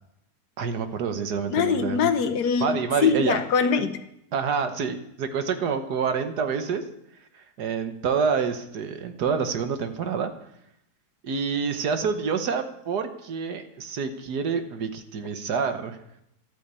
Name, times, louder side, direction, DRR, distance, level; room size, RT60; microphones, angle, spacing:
voice 1, 0.6-2.1 2.6-3.4 4.3-6.8 7.3-10.3 11.2-16.0, right 6 dB, 85° right, 7 dB, 1.7 m, -27 dB
voice 2, 1.5-4.0, left 6 dB, 90° left, 9 dB, 1.6 m, -23 dB
13.0 x 8.6 x 8.2 m, 0.80 s
omnidirectional pair, 1.7 m